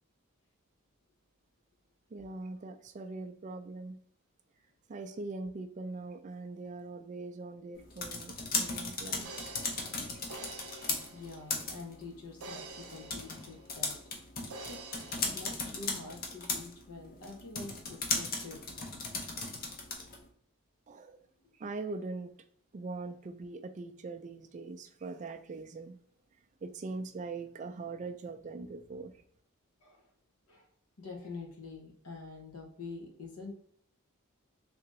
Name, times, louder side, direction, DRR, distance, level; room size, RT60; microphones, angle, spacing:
voice 1, 2.1-4.0 4.9-9.5 20.9-21.2 21.6-22.3 22.7-26.0 26.6-29.1, right 3 dB, 35° right, 7 dB, 0.3 m, -42 dB
sound 1, 7.8-20.3, left 3 dB, 40° left, 0.7 m, -37 dB
sound 2, 9.2-11.8 12.4-14.1 14.5-15.3, right 2 dB, 85° right, 0.6 m, -47 dB
voice 2, 11.1-13.9 14.7-14.8 15.3-18.6 29.8-30.1 30.5-30.7 31.0-33.5, left 3 dB, 90° left, 1 dB, 1.0 m, -46 dB
3.4 x 2.9 x 3.0 m, 0.63 s
head